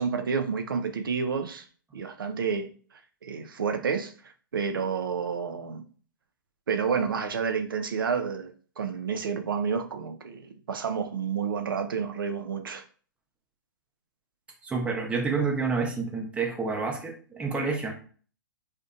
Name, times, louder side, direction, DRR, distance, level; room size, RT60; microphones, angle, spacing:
voice 1, 0.0-1.7 1.9-5.8 6.7-12.8, right 6 dB, 85° right, 0.4 m, -30 dB
voice 2, 14.6-17.9, right 4 dB, 10° right, 0.5 m, -29 dB
2.5 x 2.1 x 2.5 m
hypercardioid pair, 125°, 11 cm